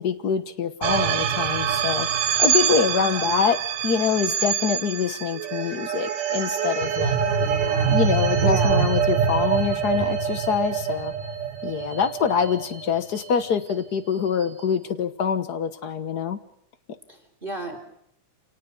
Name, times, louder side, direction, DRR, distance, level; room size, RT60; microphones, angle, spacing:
voice 1, 0.0-2.1 2.4-3.6 3.8-7.2 7.9-11.1 11.6-16.4, left 7 dB, 85° left, 11 dB, 0.8 m, -25 dB
sound 1, 0.8-13.2, right 7 dB, 80° right, 2.9 m, -24 dB
voice 2, 2.9-3.3 7.2-8.0 8.4-8.9 17.1-17.8, right 1 dB, 15° right, 6 dB, 3.4 m, -34 dB
28.0 x 18.5 x 8.1 m, 0.75 s
omnidirectional pair, 3.6 m